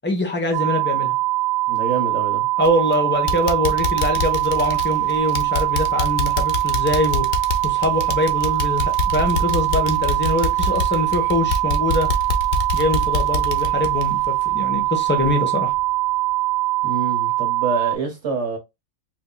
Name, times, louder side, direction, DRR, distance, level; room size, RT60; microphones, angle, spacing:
voice 1, 0.0-1.2 2.6-7.2 7.6-12.1 12.7-15.7, left 1 dB, 10° left, 0.7 m, -23 dB
sound 1, 0.5-18.0, right 18 dB, 80° right, 1.0 m, -22 dB
voice 2, 1.7-2.5 16.8-18.6, right 4 dB, 55° right, 1.2 m, -26 dB
sound 2, 2.6-2.9 3.3-14.9 15.2-15.3 15.8-15.9, left 3 dB, 85° left, 0.4 m, -26 dB
4.4 x 2.7 x 2.2 m
omnidirectional pair, 1.5 m